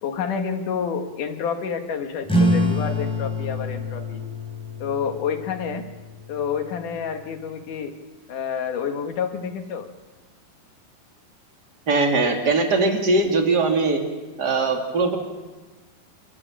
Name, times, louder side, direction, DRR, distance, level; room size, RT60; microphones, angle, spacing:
voice 1, 0.0-4.2 4.8-5.9 6.3-8.0 8.3-9.9, left 6 dB, 70° left, 6 dB, 3.0 m, -28 dB
sound 1, 2.2-7.3, left 1 dB, ahead, 3.4 m, -26 dB
voice 2, 11.9-14.0 14.4-15.2, right 3 dB, 30° right, 2 dB, 2.8 m, -20 dB
29.5 x 12.5 x 8.8 m, 1.2 s
omnidirectional pair, 4.0 m